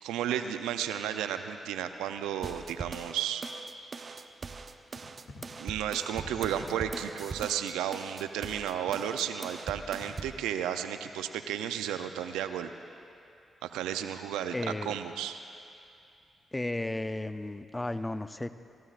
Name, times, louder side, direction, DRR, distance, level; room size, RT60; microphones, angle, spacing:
voice 1, 0.0-3.4 5.6-12.7 13.6-15.4, right 9 dB, 85° right, 9 dB, 0.5 m, -33 dB
sound 1, 2.4-10.4, right 4 dB, 50° right, 0.7 m, -41 dB
sound 2, 4.9-5.6 6.1-7.4 7.9-8.0 8.9-9.2 10.0-10.4, left 3 dB, 65° left, 2.4 m, -49 dB
voice 2, 14.5-15.0 16.5-18.5, left 2 dB, 20° left, 12 dB, 0.6 m, -34 dB
29.5 x 14.5 x 2.5 m, 2.6 s
hypercardioid pair, 40°, 0 cm